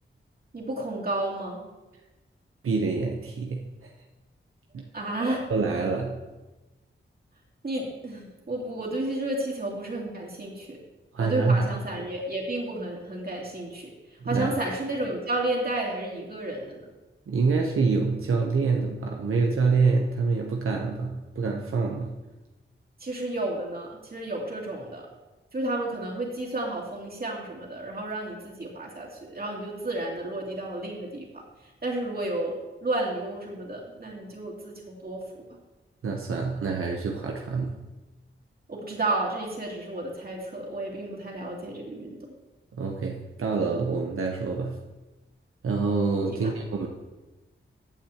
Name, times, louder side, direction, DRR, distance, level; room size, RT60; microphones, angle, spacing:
voice 1, 0.5-1.6 4.9-5.4 7.6-10.8 11.2-13.9 14.2-16.8 23.0-25.0 25.5-31.4 31.8-32.5 32.8-35.2 38.7-42.2 46.3-46.5, right 2 dB, 45° right, -3 dB, 2.8 m, -31 dB
voice 2, 2.6-3.9 4.7-4.9 5.2-6.2 11.1-11.6 14.2-14.5 17.3-22.1 36.0-37.8 42.7-44.8 45.6-46.9, right 4 dB, 85° right, 1 dB, 0.9 m, -26 dB
15.5 x 8.5 x 3.0 m, 1.1 s
wide cardioid pair, 100°, 21 cm